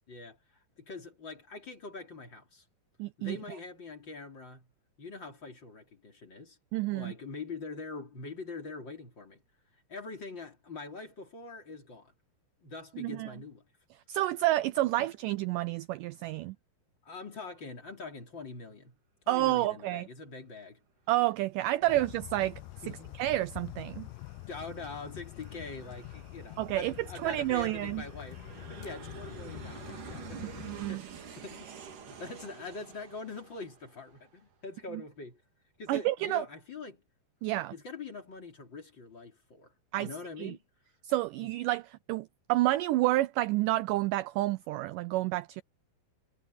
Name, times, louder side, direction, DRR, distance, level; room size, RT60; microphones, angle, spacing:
voice 1, 0.1-2.6 3.2-4.7 5.0-6.6 6.8-9.4 9.7-12.1 12.6-13.6 15.0-15.1 17.0-19.0 19.3-20.8 21.8-22.0 22.8-23.2 24.5-31.0 31.4-31.7 32.1-35.4 35.8-37.0 37.7-40.6 41.4-41.5, left 3 dB, 30° left, 3.6 m, -44 dB
voice 2, 3.0-3.4 6.7-7.1 13.0-13.3 14.1-16.6 19.3-20.1 21.1-22.6 23.2-24.1 26.6-26.9 27.2-28.0 30.7-31.0 35.9-36.4 37.4-37.7 39.9-40.1 40.4-40.5 41.0-45.6, right 17 dB, 80° right, 1.9 m, -29 dB
Aircraft, 21.5-34.5, right 7 dB, 60° right, 4.0 m, -50 dB
sound 1, 21.9-30.9, left 19 dB, 80° left, 2.1 m, -46 dB
omnidirectional pair, 4.2 m